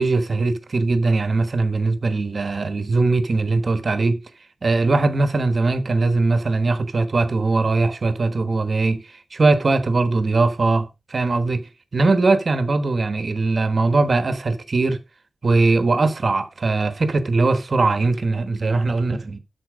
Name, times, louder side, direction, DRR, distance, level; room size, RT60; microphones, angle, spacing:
voice 1, 0.0-4.2 4.6-11.6 11.9-15.0 15.4-19.4, right 3 dB, 45° right, 1.1 m, -20 dB
12.5 x 4.3 x 5.0 m
wide cardioid pair, 135°, 0 cm